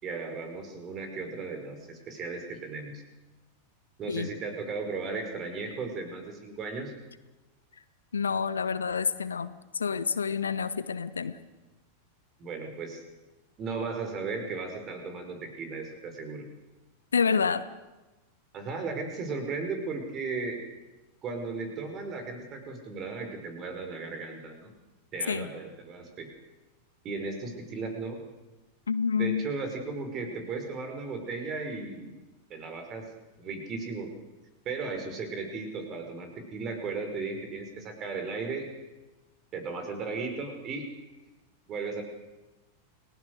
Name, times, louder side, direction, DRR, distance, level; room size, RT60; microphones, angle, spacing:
voice 1, 0.0-3.0 4.0-6.9 12.4-13.0 13.6-16.5 18.5-20.6 21.2-24.7 25.1-26.3 27.0-28.2 29.1-32.1 32.5-33.1 33.4-34.1 34.7-38.7 39.5-40.9 41.7-42.0, right 4 dB, 30° right, 6 dB, 5.4 m, -36 dB
voice 2, 8.1-11.4 17.1-17.6 25.3-25.5 28.9-29.4, left 6 dB, 70° left, 13 dB, 1.2 m, -28 dB
29.5 x 19.0 x 6.6 m, 1.1 s
figure-of-eight pair, 90°, 0 cm